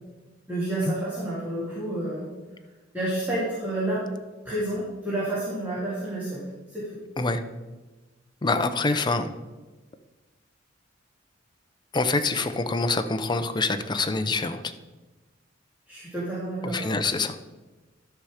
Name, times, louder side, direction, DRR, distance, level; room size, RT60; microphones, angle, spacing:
voice 1, 0.5-2.3 2.9-4.0 4.4-6.4 6.7-6.9 15.9-16.9, right 1 dB, 10° right, -9 dB, 2.4 m, -29 dB
voice 2, 8.4-9.3 11.9-14.7 16.6-17.4, left 3 dB, 25° left, 8 dB, 0.6 m, -25 dB
12.0 x 5.7 x 4.9 m, 1.2 s
head